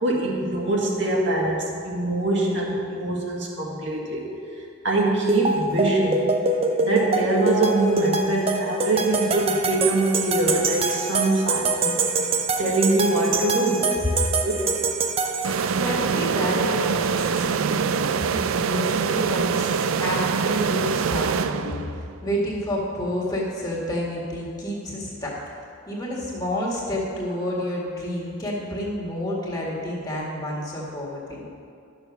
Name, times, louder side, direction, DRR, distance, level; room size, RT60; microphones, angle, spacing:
voice 1, 0.0-4.3 4.8-6.3 6.8-12.0 12.6-14.0 14.4-14.7 16.2-16.7, right 2 dB, 60° right, -3 dB, 2.0 m, -23 dB
sound 1, 5.3-15.9, right 3 dB, 30° right, 0.6 m, -25 dB
sound 2, 15.4-22.1, right 6 dB, 80° right, 0.4 m, -24 dB
voice 2, 15.7-21.8 22.2-25.4 25.9-31.5, left 1 dB, 20° left, -4 dB, 1.8 m, -29 dB
12.0 x 6.8 x 6.0 m, 2.5 s
head